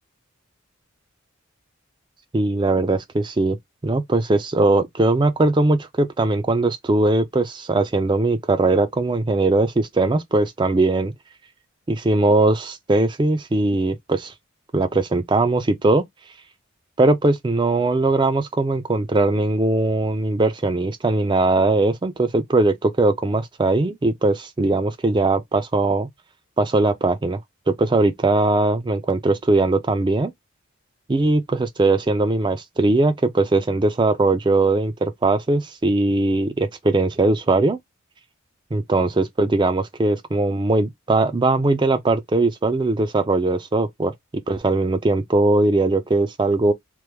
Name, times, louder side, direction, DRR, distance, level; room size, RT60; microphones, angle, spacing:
voice 1, 2.3-3.6 3.8-11.1 11.9-14.3 14.7-16.0 17.0-26.1 26.6-27.4 27.7-30.3 31.1-37.8 38.7-44.1 44.5-46.7, right 2 dB, 20° right, 0.4 m, -20 dB
3.0 x 2.0 x 3.3 m
head